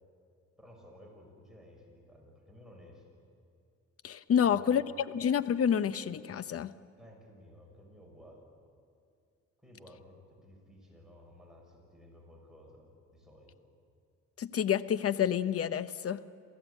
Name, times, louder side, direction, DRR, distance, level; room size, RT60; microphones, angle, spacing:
voice 1, 0.6-3.1 4.4-4.8 7.0-8.5 9.6-13.5, left 1 dB, ahead, -1 dB, 6.4 m, -55 dB
voice 2, 4.0-4.8 5.1-6.7 14.4-16.2, left 8 dB, 50° left, 14 dB, 0.9 m, -28 dB
27.5 x 16.0 x 8.4 m, 2.3 s
cardioid pair, 90°, 30 cm